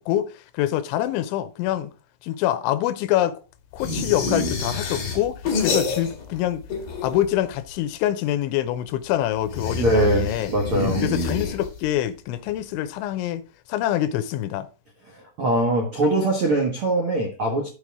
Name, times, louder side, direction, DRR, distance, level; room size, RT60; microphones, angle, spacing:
voice 1, 0.0-1.9 2.2-3.4 3.7-6.6 7.0-10.5 11.0-13.4 13.7-14.7, left 12 dB, 90° left, 3.2 m, -25 dB
sound 1, 3.8-6.4 6.6-7.5 9.4-12.0, left 3 dB, 50° left, 3.6 m, -27 dB
voice 2, 9.8-11.0 15.4-17.7, right 1 dB, 75° right, 1.2 m, -22 dB
13.0 x 4.9 x 3.6 m
omnidirectional pair, 5.2 m